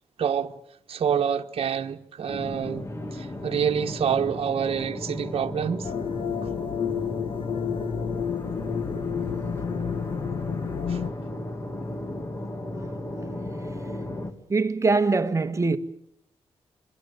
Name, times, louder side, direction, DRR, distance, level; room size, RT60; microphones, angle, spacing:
voice 1, 0.2-0.6 0.9-2.9 3.1-5.9 10.9-11.0, right 7 dB, 60° right, 1.3 m, -27 dB
sound 1, 2.3-14.3, left 1 dB, 25° left, 2.3 m, -35 dB
sound 2, 5.8-11.1, left 7 dB, 55° left, 1.2 m, -30 dB
voice 2, 14.5-15.8, right 3 dB, 30° right, 1.4 m, -23 dB
26.5 x 23.0 x 6.7 m
wide cardioid pair, 120°, 11 cm